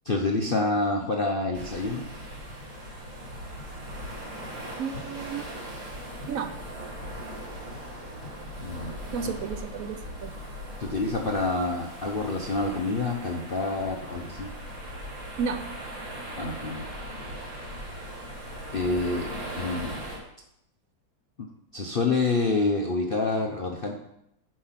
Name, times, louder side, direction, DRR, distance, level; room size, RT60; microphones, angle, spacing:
voice 1, 0.0-2.1 8.6-8.9 9.2-9.3 10.8-14.5 16.4-16.8 18.7-19.3 19.6-19.9 21.7-23.9, left 3 dB, 55° left, 1 dB, 0.6 m, -27 dB
sound 1, 1.5-20.2, equal, 40° right, 3.6 m, -39 dB
voice 2, 4.8-5.5 6.3-6.6 9.1-10.4 15.4-15.7, right 6 dB, 80° right, 8 dB, 0.7 m, -32 dB
10.5 x 5.3 x 5.8 m, 0.80 s
omnidirectional pair, 2.1 m